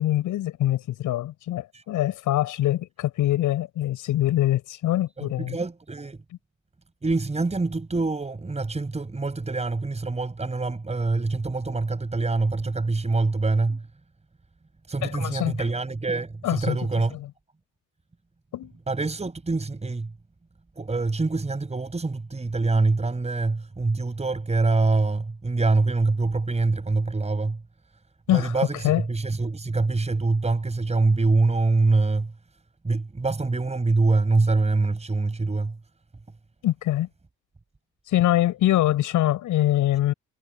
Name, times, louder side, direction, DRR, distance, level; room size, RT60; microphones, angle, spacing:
voice 1, 0.0-5.6 15.0-15.6 16.4-16.8 18.5-18.7 28.3-28.5 28.8-29.0 36.6-37.1 38.1-40.1, left 14 dB, 85° left, 7.4 m, -24 dB
voice 2, 5.2-6.2 7.0-13.8 14.9-17.1 18.9-20.1 20.8-27.6 28.3-32.3 32.8-35.8, right 3 dB, 20° right, 5.8 m, -25 dB
cardioid pair, 90°, 30 cm